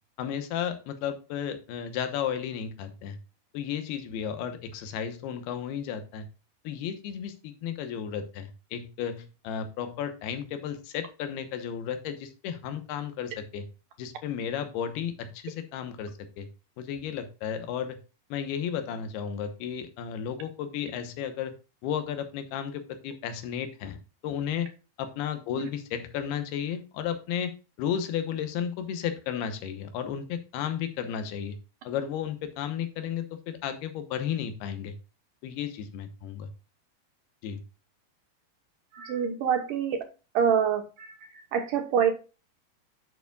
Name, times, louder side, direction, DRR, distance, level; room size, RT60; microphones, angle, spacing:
voice 1, 0.2-3.2 3.5-6.3 6.6-13.7 14.0-16.5 16.8-18.0 18.3-21.5 21.8-24.7 25.0-27.5 27.8-31.6 31.8-35.0 35.4-36.5 37.4-37.6, left 8 dB, 80° left, 9 dB, 3.0 m, -33 dB
voice 2, 38.9-40.0 40.3-42.1, right 8 dB, 70° right, 6 dB, 2.4 m, -26 dB
11.0 x 7.0 x 2.3 m, 0.32 s
omnidirectional pair, 4.5 m